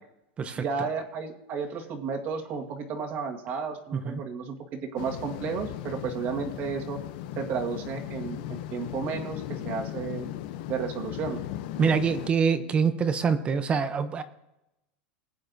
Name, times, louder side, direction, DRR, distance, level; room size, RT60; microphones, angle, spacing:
voice 1, 0.6-7.0 7.4-10.3 10.7-11.4, right 5 dB, 35° right, 2 dB, 1.6 m, -33 dB
sound 1, 5.0-12.3, left 13 dB, 55° left, 0.6 m, -37 dB
voice 2, 11.8-14.2, right 6 dB, 20° right, 11 dB, 0.7 m, -25 dB
20.5 x 9.5 x 2.7 m, 0.88 s
supercardioid pair, 155°, 6 cm